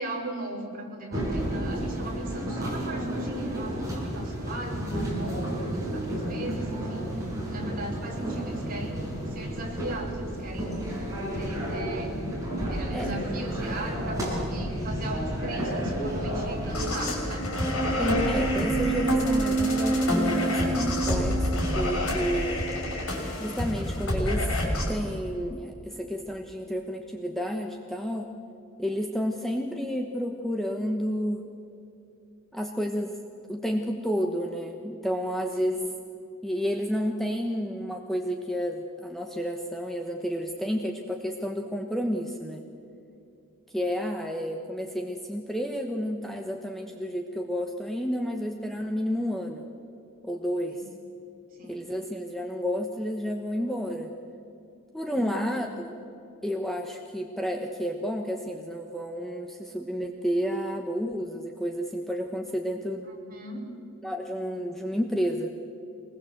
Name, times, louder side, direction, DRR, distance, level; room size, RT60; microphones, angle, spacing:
voice 1, 0.0-9.0 9.3-12.2 12.7-17.5 50.7-50.8 51.5-51.8 55.0-55.4 63.1-63.7, right 1 dB, 40° right, -1 dB, 4.7 m, -38 dB
sound 1, 1.1-16.9, equal, 15° right, 7.0 m, -31 dB
sound 2, 16.7-24.9, equal, 80° left, 6.0 m, -26 dB
voice 2, 18.0-22.8 23.4-28.3 28.8-31.4 32.5-33.2 33.5-35.8 36.4-42.6 43.7-49.6 50.2-50.8 51.6-54.1 54.9-56.0 56.4-63.1 64.0-65.5, equal, ahead, 2 dB, 1.1 m, -31 dB
24.5 x 20.5 x 7.9 m, 2.6 s
head